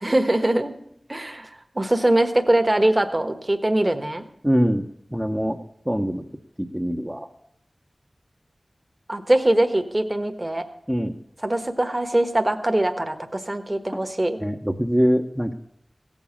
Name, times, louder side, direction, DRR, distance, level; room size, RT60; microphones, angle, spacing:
voice 1, 0.0-0.7 1.1-1.5 1.7-4.2 9.1-10.6 11.4-14.4, right 1 dB, 30° right, 7 dB, 1.3 m, -22 dB
voice 2, 4.4-4.8 5.1-5.6 5.9-6.2 6.6-7.3 10.9-11.1 14.4-15.5, equal, 5° right, 0 dB, 0.9 m, -23 dB
16.0 x 7.2 x 7.1 m, 0.75 s
wide cardioid pair, 70°, 0 cm